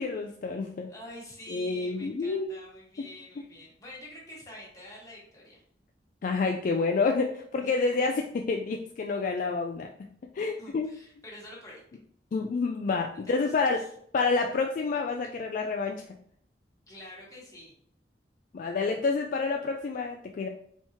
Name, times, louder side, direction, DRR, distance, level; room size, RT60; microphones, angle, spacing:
voice 1, 0.0-0.9 1.5-2.5 6.2-8.1 8.5-9.9 10.3-10.9 12.3-13.8 14.1-16.0 18.5-20.5, left 4 dB, 50° left, 3 dB, 0.3 m, -28 dB
voice 2, 0.9-5.6 7.6-7.7 10.6-11.8 13.1-13.9 16.9-17.7, left 1 dB, 20° left, -4 dB, 1.4 m, -47 dB
4.4 x 3.5 x 2.9 m, 0.64 s
head